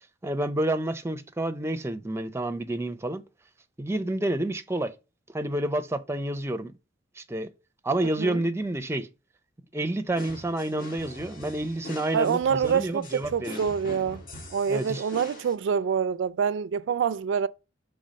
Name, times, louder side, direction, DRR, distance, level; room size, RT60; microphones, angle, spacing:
voice 1, 0.0-3.2 3.8-4.9 5.3-6.8 7.2-7.5 7.8-9.1 9.7-13.7 14.7-15.1, right 1 dB, 15° right, 0.5 m, -29 dB
sound 1, 10.1-15.5, left 2 dB, 50° left, 1.4 m, -43 dB
voice 2, 12.1-14.2 14.5-17.5, right 7 dB, 70° right, 0.3 m, -26 dB
5.5 x 3.4 x 5.1 m
head